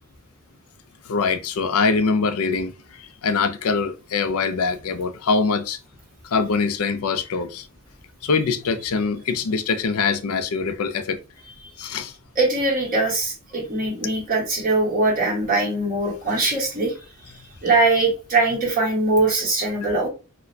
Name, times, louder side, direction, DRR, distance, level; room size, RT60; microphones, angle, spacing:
voice 1, 1.1-5.8 6.2-7.7 8.2-11.2 11.8-12.1, left 4 dB, 80° left, 0.4 m, -23 dB
voice 2, 12.3-16.9 17.6-20.1, right 2 dB, 40° right, 1.4 m, -21 dB
4.1 x 2.1 x 2.7 m
head